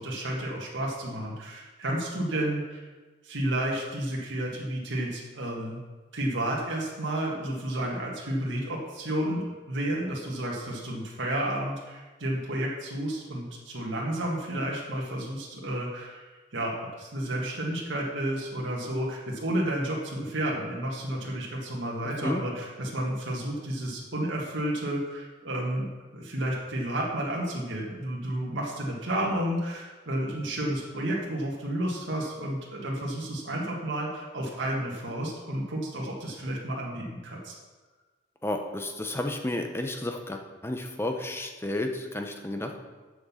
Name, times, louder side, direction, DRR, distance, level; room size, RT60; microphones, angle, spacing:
voice 1, 0.0-2.9 3.2-5.8 6.1-9.4 9.7-25.9 26.1-37.5, right 1 dB, 85° right, -3 dB, 1.7 m, -31 dB
voice 2, 38.4-42.7, left 1 dB, 15° left, 4 dB, 0.8 m, -32 dB
7.7 x 6.5 x 7.1 m, 1.3 s
head